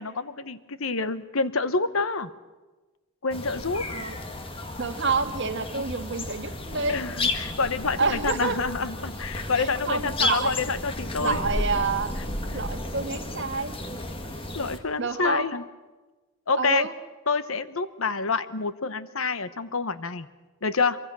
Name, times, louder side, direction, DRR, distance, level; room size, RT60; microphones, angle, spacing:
voice 1, 0.0-2.3 3.2-3.8 6.9-11.4 14.5-15.6 16.5-16.9 17.3-20.3 20.6-21.0, left 4 dB, 75° left, 13 dB, 1.1 m, -27 dB
sound 1, 3.3-14.8, left 2 dB, 25° left, 1.8 m, -33 dB
voice 2, 4.8-7.0 8.0-8.6 9.6-10.5 11.2-12.2 12.5-13.7 15.0-15.5 16.6-16.9, right 4 dB, 55° right, 7 dB, 1.6 m, -28 dB
26.0 x 24.0 x 6.3 m, 1.2 s
head